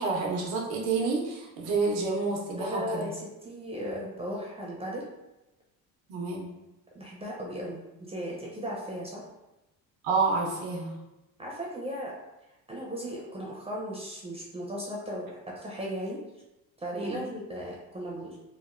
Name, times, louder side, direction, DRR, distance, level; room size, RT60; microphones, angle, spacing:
voice 1, 0.0-3.1 6.1-6.5 10.0-11.0 16.9-17.2, right 4 dB, 90° right, -1 dB, 0.7 m, -29 dB
voice 2, 2.6-5.1 6.9-9.2 11.4-12.1 12.7-16.2 16.8-18.4, equal, 15° right, -4 dB, 0.4 m, -36 dB
3.1 x 2.0 x 2.4 m, 0.97 s
cardioid pair, 115°, 36 cm